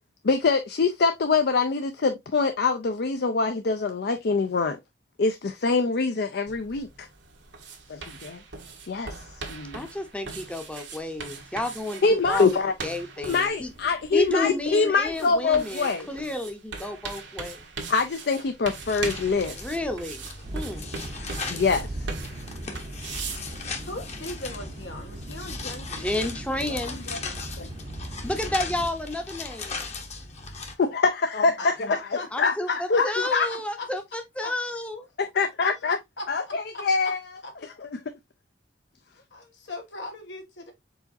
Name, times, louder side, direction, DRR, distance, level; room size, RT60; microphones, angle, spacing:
voice 1, 0.2-4.8 5.2-7.1 7.9-8.4 8.9-9.2 9.5-9.8 12.0-12.7 13.2-16.1 17.9-19.6 21.5-22.1 26.7-27.2 27.6-27.7 30.8-32.0 32.4-33.5 35.2-36.0 36.3-37.2 37.8-38.0, left 4 dB, 60° left, 0.5 m, -24 dB
sound 1, 6.5-24.1, right 4 dB, 85° right, 1.3 m, -40 dB
voice 2, 9.7-12.5 12.8-13.7 14.1-17.6 19.5-20.9 26.0-27.0 28.2-29.8 32.3-35.1, left 1 dB, 5° left, 0.7 m, -31 dB
sound 2, 18.7-30.7, left 4 dB, 40° left, 0.9 m, -38 dB
sound 3, 20.4-28.9, right 1 dB, 40° right, 0.6 m, -39 dB
voice 3, 23.8-26.3 31.6-33.9 34.4-34.5 35.6-36.3 36.7-37.1 37.4-37.5 39.1-40.7, left 2 dB, 90° left, 1.5 m, -38 dB
4.7 x 4.0 x 2.6 m
head